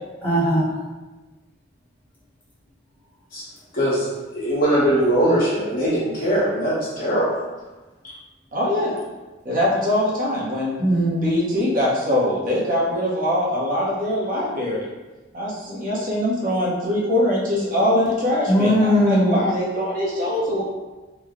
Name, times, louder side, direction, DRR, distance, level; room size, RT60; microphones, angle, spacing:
voice 1, 0.2-0.7 10.8-11.3 18.5-19.5, equal, 10° left, -9 dB, 1.0 m, -19 dB
voice 2, 3.7-4.1 4.3-7.4, right 1 dB, 50° left, -8 dB, 1.3 m, -21 dB
voice 3, 8.5-8.9 9.4-10.8 11.2-14.9 15.3-20.6, left 1 dB, 45° right, -6 dB, 0.8 m, -22 dB
3.1 x 2.1 x 3.6 m, 1.2 s
head